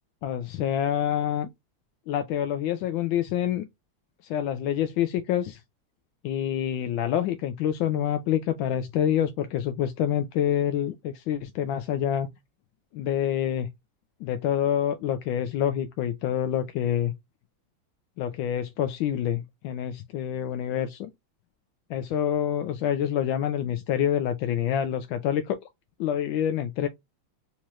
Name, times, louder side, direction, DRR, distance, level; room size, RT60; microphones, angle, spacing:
voice 1, 0.2-1.5 2.1-3.7 4.2-5.6 6.2-12.3 12.9-13.7 14.2-17.1 18.2-21.1 21.9-25.6 26.0-26.9, left 10 dB, 80° left, 1.3 m, -27 dB
4.3 x 3.0 x 2.3 m
omnidirectional pair, 2.1 m